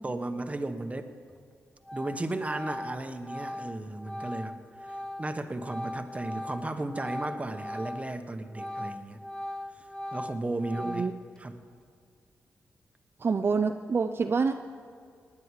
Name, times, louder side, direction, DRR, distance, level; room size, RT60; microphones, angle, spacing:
voice 1, 0.0-1.1 1.9-9.2 9.7-9.9 10.1-11.1 11.4-11.6, right 2 dB, 25° right, 8 dB, 1.1 m, -35 dB
Organ, 1.3-1.5 1.8-8.2 8.5-11.4, left 1 dB, 10° left, 0.9 m, -39 dB
voice 2, 10.8-11.1 13.2-14.5, right 5 dB, 45° right, 7 dB, 0.5 m, -27 dB
19.5 x 9.6 x 4.9 m, 2.2 s
cardioid pair, 60°, 5 cm